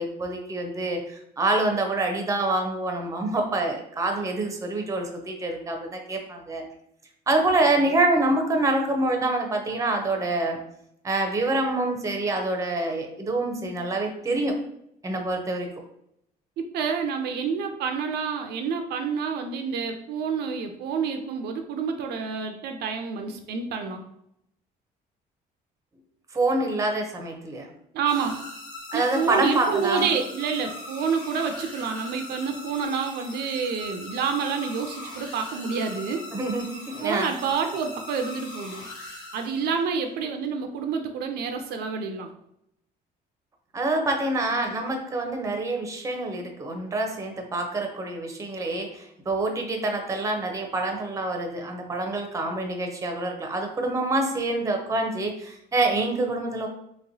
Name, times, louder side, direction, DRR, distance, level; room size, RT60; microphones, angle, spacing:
voice 1, 0.0-6.6 7.3-10.6 11.0-14.5 15.0-15.7 26.3-27.7 28.9-30.1 36.3-37.3 43.7-56.7, right 2 dB, 20° right, 3 dB, 0.6 m, -26 dB
voice 2, 16.7-24.0 27.9-28.4 28.9-36.3 37.0-38.9 39.3-42.3, right 6 dB, 70° right, 5 dB, 0.4 m, -28 dB
sound 1, 28.1-39.9, left 1 dB, 85° left, 1.3 m, -41 dB
3.1 x 2.9 x 2.6 m, 0.76 s
cardioid pair, 110°, 17 cm